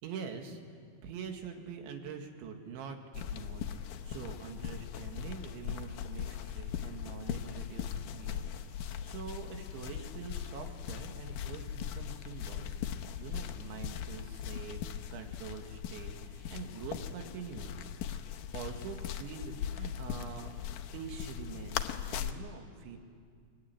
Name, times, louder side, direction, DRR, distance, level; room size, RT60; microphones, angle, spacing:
voice 1, 0.0-0.6 1.0-12.8 13.2-14.8 15.1-18.2 18.5-20.5 20.9-23.0, right 6 dB, 90° right, 4 dB, 4.4 m, -45 dB
sound 1, 3.1-22.3, left 9 dB, 90° left, 1.8 m, -40 dB
24.0 x 23.0 x 9.8 m, 2.1 s
omnidirectional pair, 5.2 m